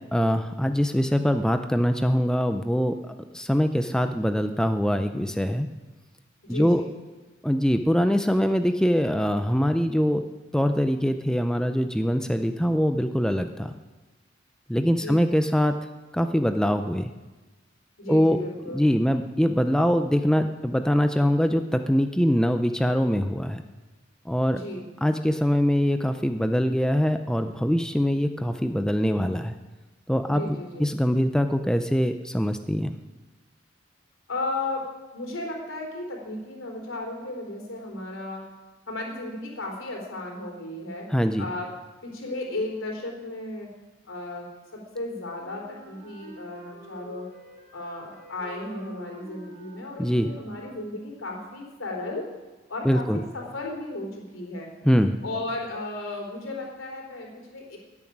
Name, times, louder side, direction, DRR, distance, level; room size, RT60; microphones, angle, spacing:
voice 1, 0.1-2.9 3.3-5.7 6.5-6.8 7.4-10.2 10.5-13.7 14.7-15.8 16.1-17.1 18.1-18.4 18.7-23.6 24.3-24.6 25.0-29.5 30.1-32.9 41.1-41.5 50.0-50.3 52.8-53.2 54.8-55.2, equal, 5° left, 7 dB, 0.5 m, -23 dB
voice 2, 6.4-6.9 14.9-15.2 18.0-18.9 24.5-24.9 30.3-30.9 34.3-34.9 35.1-38.4 38.9-41.1 41.4-41.7 42.0-43.7 44.1-47.3 47.7-52.3 52.7-53.1 53.3-54.7 55.2-57.8, left 2 dB, 90° left, 1 dB, 3.6 m, -34 dB
Wind instrument woodwind instrument, 45.4-51.2, right 1 dB, 40° right, 2.7 m, -48 dB
14.0 x 7.3 x 9.9 m, 1.2 s
head